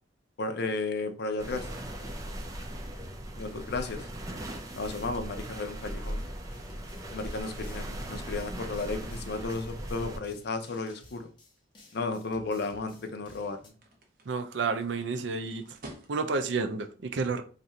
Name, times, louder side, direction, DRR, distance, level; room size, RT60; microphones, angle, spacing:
voice 1, 0.4-1.7 3.4-4.1 4.7-6.2 7.1-11.3 11.9-13.7, left 3 dB, 60° left, 0.5 m, -34 dB
sound 1, 1.4-10.2, right 1 dB, 20° right, 0.5 m, -38 dB
sound 2, 6.5-13.7, left 1 dB, 25° left, 0.8 m, -56 dB
sound 3, 10.3-16.6, right 1 dB, 50° right, 0.9 m, -56 dB
voice 2, 14.3-15.8 16.1-17.4, right 4 dB, 70° right, 0.5 m, -30 dB
2.7 x 2.5 x 4.2 m
head